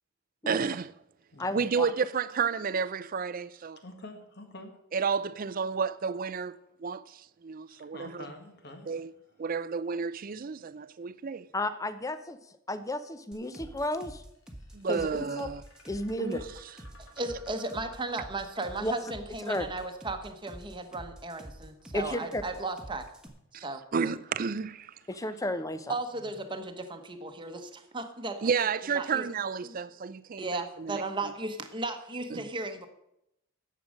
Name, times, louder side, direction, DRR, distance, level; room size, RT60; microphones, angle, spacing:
voice 1, 0.5-0.9 1.5-3.8 4.9-8.3 8.9-9.1 9.4-11.5 14.7-15.6 16.2-16.4 23.5-23.7 23.9-24.9 28.4-31.0 32.3-32.5, right 5 dB, 40° right, 0.4 m, -31 dB
voice 2, 1.4-1.9 11.5-12.4 12.7-14.2 14.9-15.5 15.9-16.5 18.8-18.9 19.5-19.7 21.9-22.4 25.1-25.9, left 1 dB, 15° left, 0.6 m, -33 dB
voice 3, 3.8-4.7 7.7-8.9 25.1-25.4 26.2-26.3, left 1 dB, 50° left, 1.7 m, -47 dB
sound 1, 13.3-23.3, right 1 dB, 5° right, 1.3 m, -47 dB
sound 2, 14.1-30.1, left 1 dB, 85° left, 3.1 m, -61 dB
voice 4, 17.2-23.0 23.5-23.8 25.9-28.5 28.9-29.2 29.6-29.7 30.4-32.9, right 2 dB, 25° right, 1.0 m, -35 dB
11.0 x 7.6 x 6.4 m
head